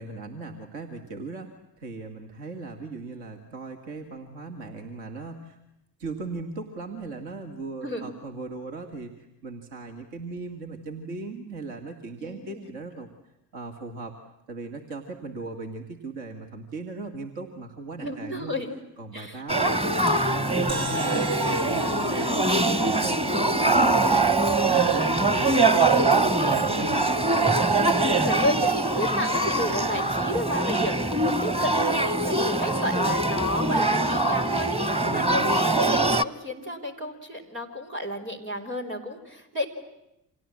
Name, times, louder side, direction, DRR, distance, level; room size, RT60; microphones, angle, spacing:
voice 1, 0.0-5.6 6.0-14.2 14.5-18.5 19.0-20.0 20.3-27.3 35.0-35.5, right 3 dB, 65° right, 3 dB, 2.4 m, -38 dB
voice 2, 12.2-12.7 18.0-18.7 19.1-19.8 25.1-25.4 27.7-39.7, left 1 dB, 85° right, 0 dB, 3.5 m, -32 dB
Male speech man speaking / Child speech kid speaking / Conversation, 19.5-36.2, right 2 dB, 15° right, 1.2 m, -23 dB
sound 1, 20.7-25.3, right 1 dB, 35° right, 5.1 m, -39 dB
29.5 x 26.5 x 7.6 m, 0.86 s
figure-of-eight pair, 50°, 48 cm